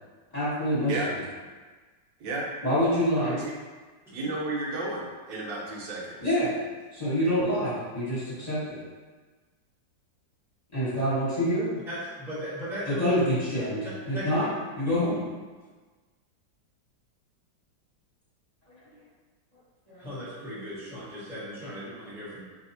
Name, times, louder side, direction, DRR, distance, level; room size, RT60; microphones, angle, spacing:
voice 1, 0.3-0.9 2.6-3.3 6.2-6.5 6.9-8.8 10.7-11.7 12.8-13.8 14.1-14.5 14.8-15.2 19.9-20.0, equal, 25° left, -12 dB, 1.5 m, -26 dB
voice 2, 4.1-6.2, right 2 dB, 85° right, -2 dB, 1.5 m, -32 dB
voice 3, 11.9-13.2 14.1-14.2 14.8-15.0 20.0-22.4, equal, ahead, -10 dB, 1.1 m, -36 dB
4.7 x 3.3 x 2.7 m, 1.4 s
omnidirectional pair, 2.0 m